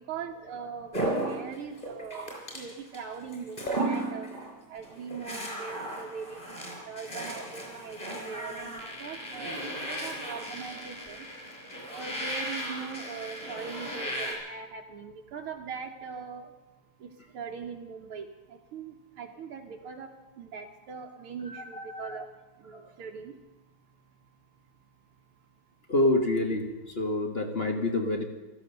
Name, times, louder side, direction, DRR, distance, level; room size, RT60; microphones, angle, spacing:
voice 1, 0.1-4.3 4.7-11.2 11.9-16.5 17.3-20.1 20.4-22.3 22.6-23.3, right 6 dB, 80° right, 1 dB, 1.9 m, -41 dB
sound 1, 0.9-3.0 3.3-4.5 4.8-14.3, right 1 dB, 15° left, 4.6 m, -35 dB
voice 2, 21.5-22.2 22.7-22.8 25.9-28.2, left 1 dB, 35° left, 5 dB, 1.2 m, -28 dB
15.5 x 13.0 x 6.6 m, 1.1 s
omnidirectional pair, 2.4 m